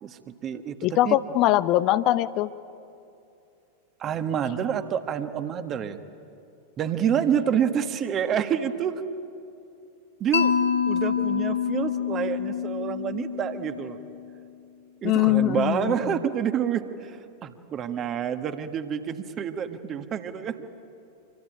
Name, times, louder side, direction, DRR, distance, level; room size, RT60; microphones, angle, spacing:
voice 1, 0.0-0.8 1.0-1.2 4.0-6.0 6.8-9.0 10.2-10.5 10.9-14.0 15.0-20.6, right 8 dB, 30° right, 8 dB, 1.7 m, -28 dB
voice 2, 0.8-2.5 15.0-16.2, left 15 dB, 40° left, 14 dB, 0.7 m, -22 dB
Mallet percussion, 10.3-14.3, left 8 dB, 65° left, 1.4 m, -27 dB
26.0 x 24.5 x 9.3 m, 2.6 s
figure-of-eight pair, 90°, 0 cm